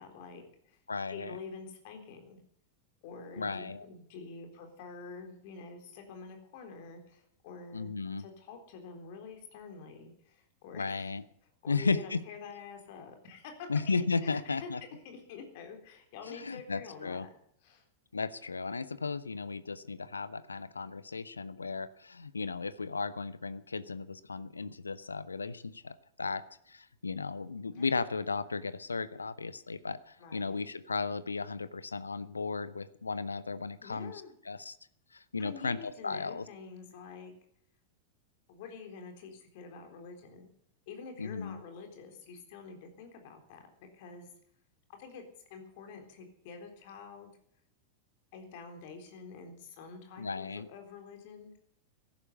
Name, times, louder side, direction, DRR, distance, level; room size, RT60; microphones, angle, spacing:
voice 1, 0.0-0.8 1.1-2.4 3.0-7.9 8.2-11.1 11.6-13.7 14.2-14.7 15.0-17.3 17.6-17.8 27.7-27.9 30.2-30.6 33.8-34.3 35.4-37.3 38.5-40.5 40.9-44.3 44.9-45.2 45.5-47.4 48.3-51.5, left 5 dB, 50° left, 4 dB, 3.8 m, -47 dB
voice 2, 0.9-1.4 3.4-3.9 7.7-8.2 10.7-11.2 11.7-12.2 13.7-14.8 16.3-17.3 18.1-26.4 26.7-34.8 35.1-36.4 41.2-41.6 50.2-50.7, left 4 dB, 80° left, 16 dB, 0.7 m, -35 dB
14.5 x 11.5 x 8.1 m, 0.67 s
figure-of-eight pair, 90°, 0 cm